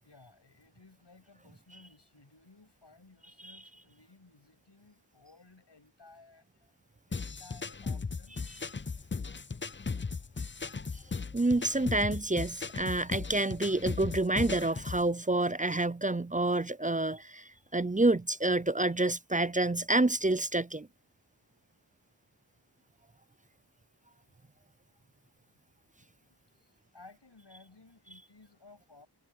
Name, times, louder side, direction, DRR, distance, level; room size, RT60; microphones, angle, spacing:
voice 1, 0.0-6.7 7.1-8.4 26.0-29.1, left 3 dB, 70° left, 7.8 m, -58 dB
sound 1, 7.1-15.1, left 4 dB, 25° left, 0.6 m, -37 dB
voice 2, 11.3-20.9, right 2 dB, 20° right, 0.5 m, -28 dB
wide cardioid pair, 40°, 44 cm